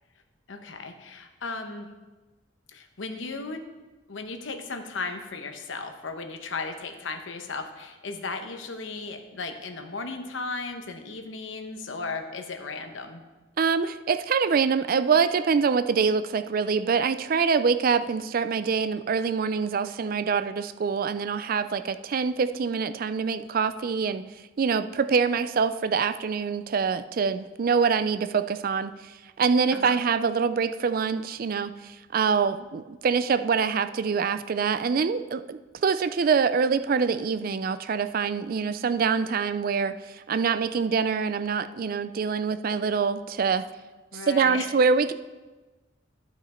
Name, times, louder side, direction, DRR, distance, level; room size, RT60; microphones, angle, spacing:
voice 1, 0.5-1.9 2.7-3.6 4.1-13.2 29.7-29.9 44.1-44.7, left 3 dB, 75° left, 6 dB, 0.9 m, -36 dB
voice 2, 13.6-24.2 24.6-43.6 44.1-45.1, right 5 dB, 45° right, 12 dB, 0.4 m, -25 dB
11.5 x 6.0 x 4.3 m, 1.2 s
head